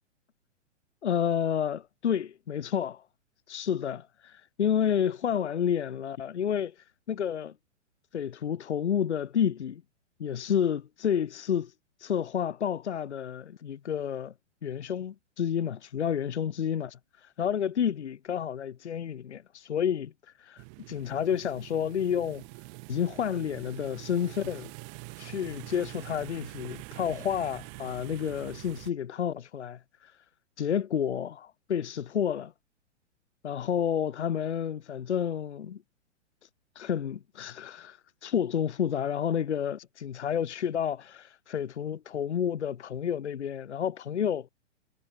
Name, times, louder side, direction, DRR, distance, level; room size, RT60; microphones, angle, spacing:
voice 1, 1.0-3.0 3.5-6.7 7.1-7.5 8.1-9.8 10.2-11.7 12.0-14.3 14.6-17.0 17.4-20.1 20.4-22.4 22.9-24.7 25.2-30.1 30.6-32.5 33.4-35.8 36.8-44.5, left 8 dB, 65° left, 0.8 m, -30 dB
sound 1, 20.6-28.9, right 37 dB, 25° right, 1.1 m, -45 dB
figure-of-eight pair, 115°, 36 cm